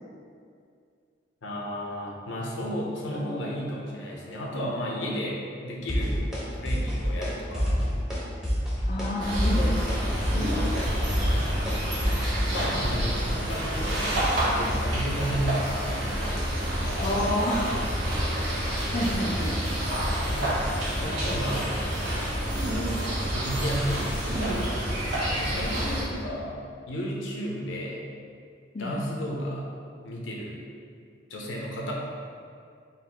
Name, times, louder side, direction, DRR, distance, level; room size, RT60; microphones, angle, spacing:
voice 1, 1.4-6.2 6.6-7.7 12.4-16.0 16.8-17.3 17.6-17.8 20.2-20.5 20.9-21.6 22.7-24.5 25.3-26.5 26.9-28.1 28.8-29.7 30.0-30.6 31.3-31.9, equal, 80° left, -2 dB, 0.7 m, -33 dB
sound 1, 5.9-6.4 6.7-7.3 7.5-8.2 8.4-9.1 9.3-13.0, equal, 5° right, 0.7 m, -27 dB
voice 2, 8.9-9.7 10.3-10.7 17.0-17.7 18.6-19.6 28.7-28.9, left 1 dB, 40° left, -4 dB, 0.4 m, -29 dB
sound 2, 9.2-26.0, equal, 65° right, 1.1 m, -28 dB
4.0 x 2.6 x 4.1 m, 2.3 s
head